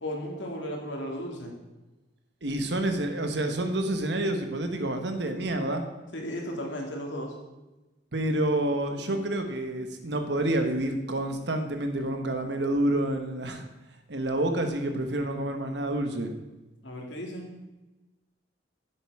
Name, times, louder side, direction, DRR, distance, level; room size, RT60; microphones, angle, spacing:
voice 1, 0.0-1.5 6.1-7.3 16.8-17.5, equal, 85° left, 1 dB, 2.4 m, -35 dB
voice 2, 2.4-5.8 8.1-13.6 14.1-16.3, right 1 dB, 70° right, 6 dB, 1.3 m, -28 dB
11.0 x 7.7 x 4.8 m, 1.1 s
head